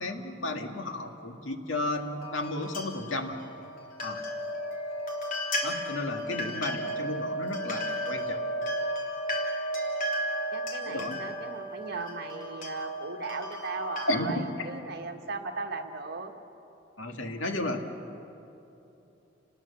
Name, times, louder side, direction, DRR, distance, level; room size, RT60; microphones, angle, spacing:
voice 1, 0.0-3.4 4.0-4.2 5.6-8.4 10.8-11.2 14.1-14.5 17.0-17.8, left 1 dB, 85° left, 5 dB, 2.0 m, -33 dB
sound 1, 1.8-14.2, equal, 45° left, 3.5 m, -34 dB
voice 2, 10.5-16.3, right 3 dB, 55° right, 3 dB, 1.8 m, -37 dB
29.5 x 20.0 x 7.1 m, 2.9 s
head